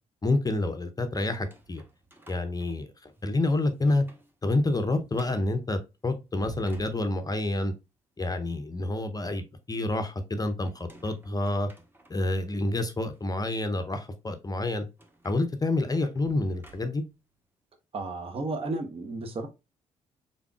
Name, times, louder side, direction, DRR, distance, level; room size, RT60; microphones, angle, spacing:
voice 1, 0.2-1.8 2.3-4.0 4.4-7.7 8.2-11.7 12.1-14.9 15.2-17.0, left 2 dB, 25° left, 8 dB, 0.6 m, -28 dB
sound 1, 1.3-3.3 3.7-4.3 4.6-4.7 5.1-5.6 6.2-7.5 10.7-12.4 13.1-13.2 15.0-17.2, right 3 dB, 15° right, 1.0 m, -52 dB
voice 2, 17.9-19.5, right 2 dB, 35° right, 5 dB, 0.8 m, -33 dB
3.9 x 3.5 x 2.3 m, 0.26 s
hypercardioid pair, 45°, 17 cm